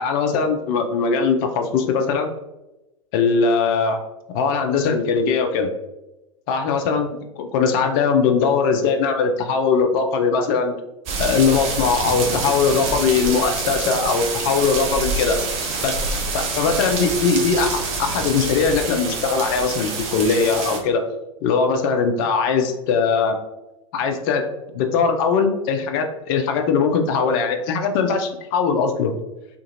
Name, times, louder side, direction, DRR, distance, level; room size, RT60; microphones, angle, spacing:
voice 1, 0.0-2.3 3.1-4.0 4.3-5.7 6.5-7.1 7.4-10.7 11.2-15.4 15.8-16.0 16.3-21.0 21.4-23.3 23.9-29.1, left 5 dB, 40° left, 5 dB, 0.4 m, -20 dB
sound 1, 11.1-20.8, right 3 dB, 35° right, 0.6 m, -26 dB
2.9 x 2.4 x 2.6 m, 0.95 s
figure-of-eight pair, 90°, 18 cm